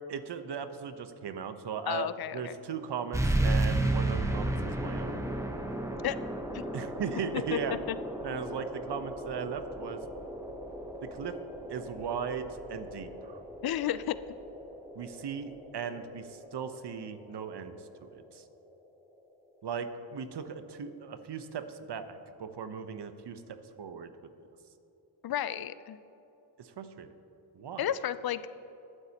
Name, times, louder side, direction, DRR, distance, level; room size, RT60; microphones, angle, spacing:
voice 1, 0.1-2.1 2.3-5.3 6.7-7.8 8.2-10.0 11.0-11.4 11.7-13.4 14.9-18.4 19.6-23.4 23.8-24.1 26.6-27.1 27.5-27.9, right 7 dB, 55° right, 9 dB, 1.0 m, -38 dB
voice 2, 1.9-2.6 6.0-6.2 6.5-6.6 7.5-7.6 7.9-8.0 8.3-8.4 13.6-14.2 25.2-26.0 27.8-28.4, left 11 dB, 50° left, 15 dB, 0.5 m, -32 dB
sound 1, 3.1-18.2, right 1 dB, 5° right, 1.0 m, -34 dB
22.0 x 8.0 x 2.9 m, 2.8 s
cardioid pair, 65°, 50 cm